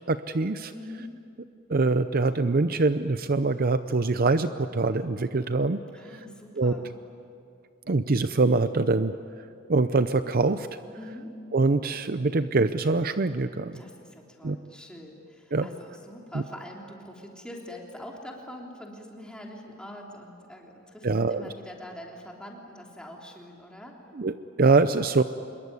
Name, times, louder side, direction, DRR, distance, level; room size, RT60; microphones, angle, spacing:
voice 1, 0.1-0.7 1.7-5.8 6.6-6.8 7.9-9.1 9.7-10.7 11.5-13.8 14.4-14.6 15.5-15.7 16.3-16.4 21.0-21.4 24.2-25.2, right 3 dB, 45° right, 11 dB, 0.6 m, -24 dB
voice 2, 0.7-1.1 5.9-6.9 10.9-11.4 13.7-24.0, left 1 dB, 5° left, -1 dB, 3.2 m, -44 dB
26.0 x 22.0 x 9.7 m, 2.4 s
head